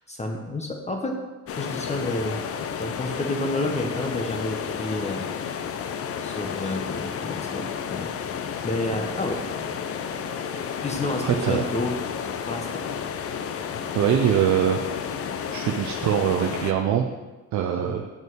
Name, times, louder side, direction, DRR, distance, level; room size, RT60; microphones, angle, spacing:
voice 1, 0.1-1.2 1.6-2.4 2.8-5.3 6.2-8.1 8.6-9.4 10.5-11.9 12.5-12.8 17.8-17.9, left 2 dB, 20° left, 2 dB, 0.8 m, -30 dB
sound 1, 1.5-16.7, left 7 dB, 50° left, 0.5 m, -31 dB
voice 2, 11.2-11.7 13.9-14.8 15.5-17.1 17.5-18.1, right 9 dB, 70° right, 4 dB, 0.6 m, -23 dB
6.0 x 5.5 x 4.6 m, 1.2 s
cardioid pair, 90°, 30 cm